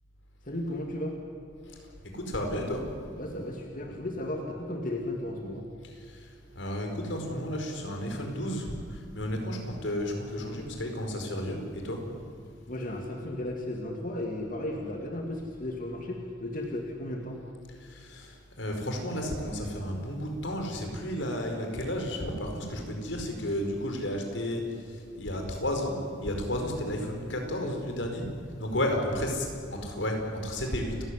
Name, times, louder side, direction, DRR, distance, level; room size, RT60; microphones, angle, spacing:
voice 1, 0.4-1.2 3.2-5.6 12.7-17.4, left 1 dB, 45° left, 1 dB, 2.3 m, -35 dB
voice 2, 2.0-2.8 5.8-6.3 6.5-12.0 17.8-28.3 28.6-31.0, left 1 dB, 85° left, 3 dB, 4.9 m, -32 dB
29.5 x 14.5 x 10.0 m, 2.3 s
head